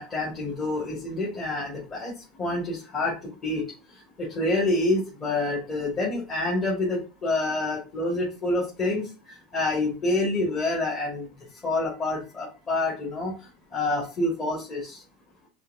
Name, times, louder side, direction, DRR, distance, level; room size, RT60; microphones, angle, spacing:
voice 1, 0.0-3.1 3.4-3.6 4.2-11.3 11.6-13.3 13.7-15.0, left 2 dB, 30° left, -5 dB, 1.7 m, -27 dB
5.5 x 3.1 x 2.7 m, 0.34 s
supercardioid pair, 125°, 0 cm